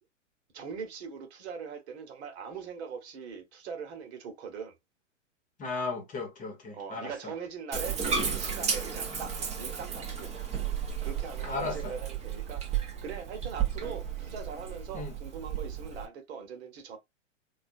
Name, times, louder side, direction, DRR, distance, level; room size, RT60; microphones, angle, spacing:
voice 1, 0.5-4.7 6.7-10.3 11.0-17.0, right 6 dB, 55° right, 1.2 m, -41 dB
voice 2, 5.6-7.1 11.4-11.9 14.9-15.2, left 3 dB, 20° left, 1.1 m, -35 dB
Bathtub (filling or washing), 7.7-16.1, right 7 dB, 15° right, 0.9 m, -33 dB
3.5 x 2.4 x 2.6 m
hypercardioid pair, 115°, 38 cm